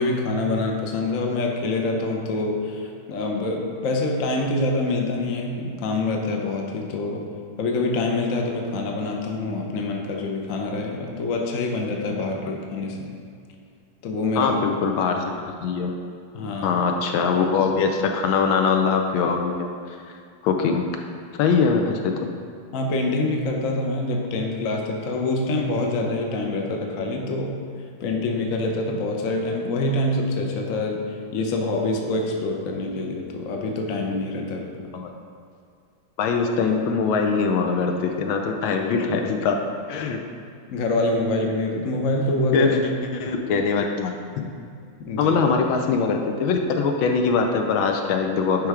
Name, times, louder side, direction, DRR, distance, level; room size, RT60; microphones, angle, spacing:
voice 1, 0.0-7.2 7.6-13.1 14.0-14.6 16.3-16.8 22.7-27.6 28.0-34.7 40.7-42.7 45.0-45.4, left 2 dB, 60° left, 1 dB, 0.9 m, -25 dB
voice 2, 14.4-15.2 15.6-15.9 16.6-20.0 20.4-20.8 21.4-22.3 34.9-35.1 36.2-39.6 39.9-40.2 42.5-42.8 43.1-44.5 45.2-48.7, left 5 dB, 75° left, 4 dB, 1.3 m, -22 dB
10.0 x 3.4 x 4.8 m, 2.3 s
omnidirectional pair, 2.3 m